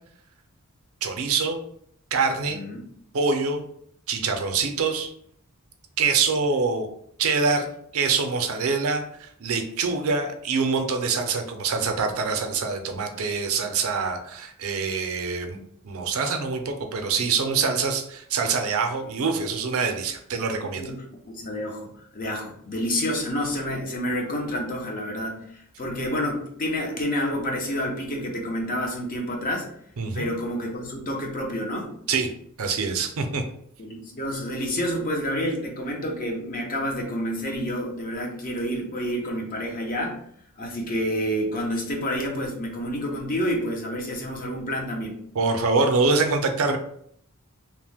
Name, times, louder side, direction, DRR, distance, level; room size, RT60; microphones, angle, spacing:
voice 1, 1.0-1.6 2.1-2.6 3.1-3.6 4.1-5.1 6.0-6.9 7.2-7.7 7.9-15.6 15.8-20.8 30.0-30.3 32.1-32.3 32.6-33.4 45.4-46.8, right 4 dB, 65° right, 5 dB, 0.5 m, -25 dB
voice 2, 2.5-2.8 20.6-29.7 30.1-31.9 33.8-40.2 40.6-45.1, equal, 40° left, 0 dB, 0.6 m, -29 dB
2.8 x 2.1 x 3.4 m, 0.67 s
head